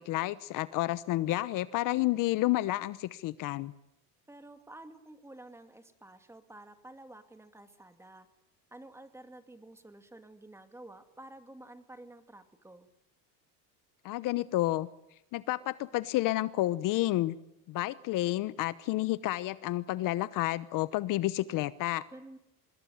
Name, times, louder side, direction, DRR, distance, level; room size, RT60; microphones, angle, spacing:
voice 1, 0.0-3.7 14.0-14.9 15.3-17.4 17.7-22.0, left 16 dB, 55° left, 16 dB, 1.0 m, -30 dB
voice 2, 4.3-8.3 8.7-12.9 22.1-22.4, right 1 dB, 5° right, 8 dB, 2.3 m, -51 dB
25.5 x 21.0 x 9.5 m, 0.84 s
cardioid pair, 135°, 38 cm